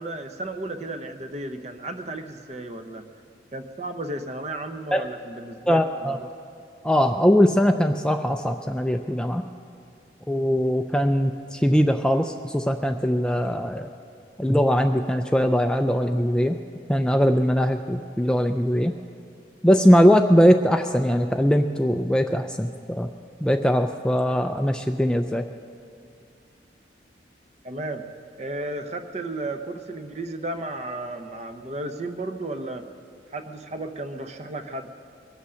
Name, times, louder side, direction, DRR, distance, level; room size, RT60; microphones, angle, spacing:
voice 1, 0.0-3.0 3.5-6.3 27.6-28.0 28.4-32.8 33.3-34.9, right 2 dB, 35° right, 7 dB, 0.8 m, -34 dB
voice 2, 5.7-6.2 6.8-9.4 10.3-13.9 14.4-16.6 16.9-18.9 19.6-23.1 23.4-25.5, equal, 5° left, 6 dB, 0.3 m, -21 dB
22.0 x 8.2 x 6.3 m, 2.4 s
head